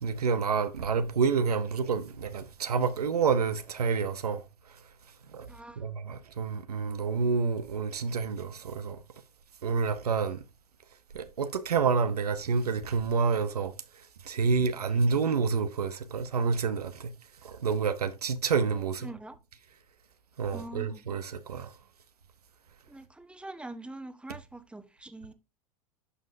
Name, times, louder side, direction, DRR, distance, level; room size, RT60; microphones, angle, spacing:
voice 1, 0.0-4.4 5.3-5.5 5.8-9.0 9.6-10.4 11.1-13.7 14.3-17.1 17.4-19.1 20.4-21.7, right 5 dB, 85° right, 0.8 m, -28 dB
voice 2, 5.5-5.9 19.0-19.4 20.5-21.0 22.9-25.3, right 2 dB, 5° right, 1.1 m, -44 dB
11.0 x 5.5 x 2.6 m
hypercardioid pair, 85°, 19 cm